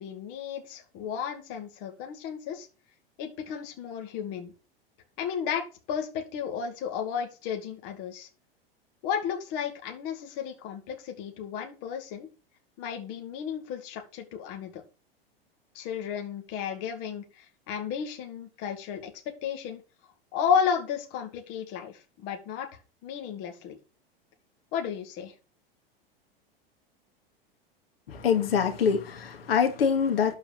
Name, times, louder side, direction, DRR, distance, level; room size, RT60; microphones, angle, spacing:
voice 1, 0.0-2.7 3.2-4.5 5.2-8.3 9.0-12.3 12.8-14.8 15.7-19.1 19.4-19.8 20.3-22.7 23.0-23.8 24.7-25.3, left 7 dB, 50° left, 2.3 m, -33 dB
voice 2, 28.1-30.3, left 7 dB, 75° left, 2.5 m, -25 dB
12.0 x 4.8 x 6.9 m
hypercardioid pair, 95°, 30 cm